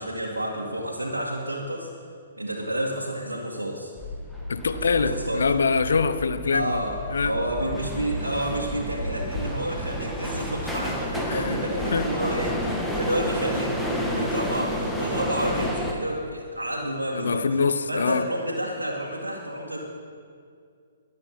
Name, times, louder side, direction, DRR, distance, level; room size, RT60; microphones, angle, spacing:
voice 1, 0.0-1.9 2.4-3.9 4.7-5.6 6.5-7.0 7.2-13.8 14.1-17.5 17.9-19.8, right 1 dB, 80° right, -4 dB, 2.1 m, -30 dB
sound 1, 4.0-15.9, equal, ahead, 1.8 m, -30 dB
voice 2, 4.5-6.8 7.1-7.3 11.3-11.6 11.9-12.1 17.1-18.3, left 5 dB, 65° left, 12 dB, 0.9 m, -24 dB
22.5 x 8.8 x 6.0 m, 2.2 s
figure-of-eight pair, 125°, 0 cm